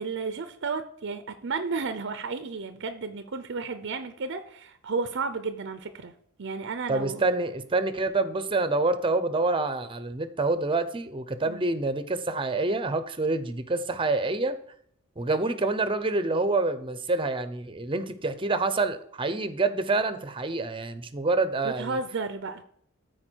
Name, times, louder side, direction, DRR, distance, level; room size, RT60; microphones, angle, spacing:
voice 1, 0.0-6.1 6.4-7.2 11.4-11.6 21.6-22.6, right 4 dB, 60° right, 10 dB, 0.6 m, -32 dB
voice 2, 6.9-14.6 15.2-22.0, right 3 dB, 25° right, 11 dB, 0.7 m, -27 dB
13.5 x 4.7 x 4.6 m, 0.64 s
head